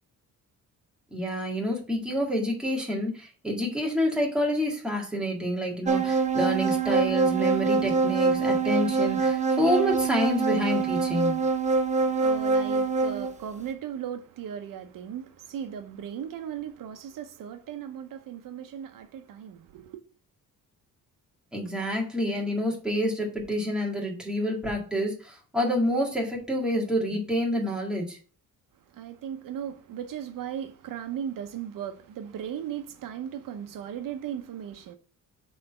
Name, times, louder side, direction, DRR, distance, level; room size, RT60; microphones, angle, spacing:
voice 1, 1.1-11.4 21.5-28.2, equal, ahead, 1.9 m, -28 dB
sound 1, 5.9-13.3, right 4 dB, 20° right, 0.6 m, -24 dB
voice 2, 11.9-20.0 28.8-35.0, right 9 dB, 75° right, 0.8 m, -37 dB
6.5 x 3.9 x 5.4 m
wide cardioid pair, 165°, 33 cm